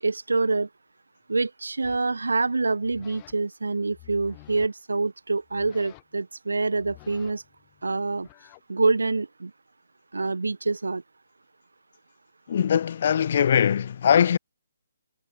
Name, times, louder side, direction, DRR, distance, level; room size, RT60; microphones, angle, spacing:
voice 1, 0.0-0.7 1.3-7.4 7.8-8.3 8.7-9.5 10.1-11.0, right 3 dB, 70° right, 0.7 m, -26 dB
sound 1, 1.8-2.1 2.8-3.3 3.8-4.7 5.4-6.2 6.7-8.6, left 29 dB, 25° left, 4.2 m, -51 dB
voice 2, 12.5-14.4, left 8 dB, 45° left, 1.1 m, -21 dB
figure-of-eight pair, 140°, 0 cm